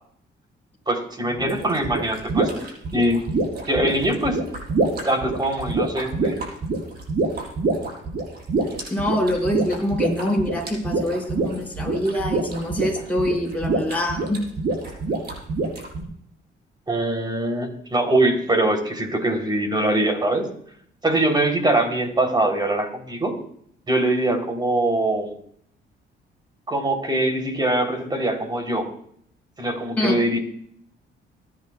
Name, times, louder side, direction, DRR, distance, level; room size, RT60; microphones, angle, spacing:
voice 1, 0.9-2.5 2.9-3.2 3.7-4.4 5.0-6.4 16.9-20.5 21.0-23.3 23.9-25.3 26.7-28.9 29.6-30.4, right 1 dB, 20° right, 4 dB, 3.6 m, -22 dB
sound 1, 1.4-16.0, right 3 dB, 55° right, 5.8 m, -26 dB
voice 2, 8.9-14.4 30.0-30.2, left 1 dB, 10° left, -2 dB, 5.7 m, -25 dB
26.0 x 10.5 x 2.4 m, 0.65 s
cardioid pair, 90°, 20 cm